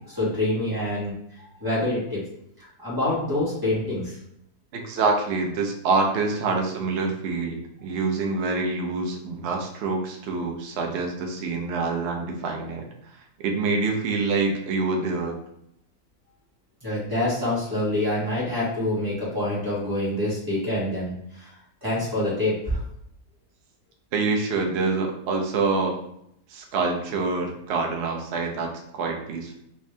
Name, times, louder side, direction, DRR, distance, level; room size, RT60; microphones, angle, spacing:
voice 1, 0.1-1.1 1.6-2.3 2.6-4.2 16.8-21.5 21.8-22.8, left 1 dB, 15° right, -7 dB, 1.4 m, -26 dB
voice 2, 4.7-12.9 13.4-15.4 24.1-26.0 26.5-29.6, right 3 dB, 60° right, 1 dB, 0.7 m, -26 dB
3.4 x 2.7 x 3.2 m, 0.73 s
omnidirectional pair, 1.7 m